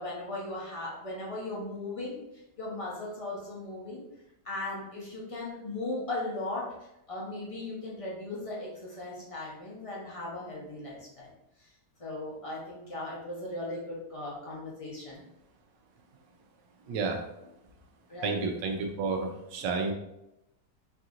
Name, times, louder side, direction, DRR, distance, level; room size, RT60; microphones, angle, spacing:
voice 1, 0.0-4.0 4.4-6.7 7.1-11.3 11.6-11.7 12.0-15.2 18.1-18.4, left 2 dB, 35° left, -5 dB, 0.5 m, -37 dB
voice 2, 16.9-17.2 18.2-19.9, right 4 dB, 85° right, 2 dB, 1.3 m, -31 dB
4.6 x 2.8 x 2.5 m, 0.86 s
omnidirectional pair, 1.9 m